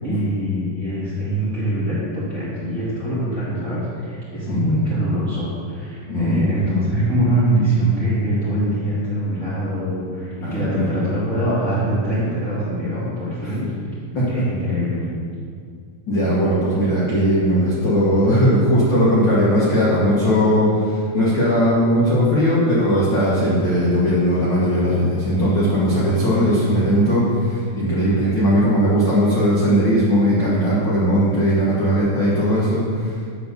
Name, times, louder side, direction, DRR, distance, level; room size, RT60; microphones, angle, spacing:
voice 1, 0.0-13.7 14.3-15.1, right 1 dB, 25° right, -11 dB, 2.1 m, -23 dB
voice 2, 6.1-6.4 10.4-11.0 13.4-13.6 14.1-14.4 16.1-33.2, equal, 65° left, -8 dB, 1.1 m, -18 dB
9.9 x 4.0 x 6.8 m, 2.1 s
omnidirectional pair, 4.5 m